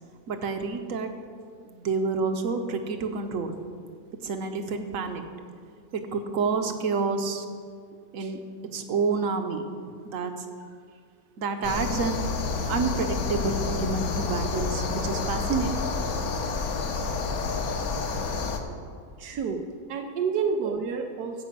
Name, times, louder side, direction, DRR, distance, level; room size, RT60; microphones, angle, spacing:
voice 1, 0.3-1.1 1.7-3.6 4.2-5.2 5.9-7.4 8.1-8.4 8.7-9.7 10.0-10.3 11.4-12.2 12.7-15.7 18.7-18.8, right 4 dB, 60° right, 7 dB, 1.2 m, -28 dB
sound 1, 11.6-18.6, left 4 dB, 70° left, 1.4 m, -29 dB
voice 2, 19.2-19.6 19.9-21.4, right 5 dB, 90° right, 3 dB, 1.3 m, -29 dB
14.5 x 5.1 x 8.0 m, 2.1 s
omnidirectional pair, 1.7 m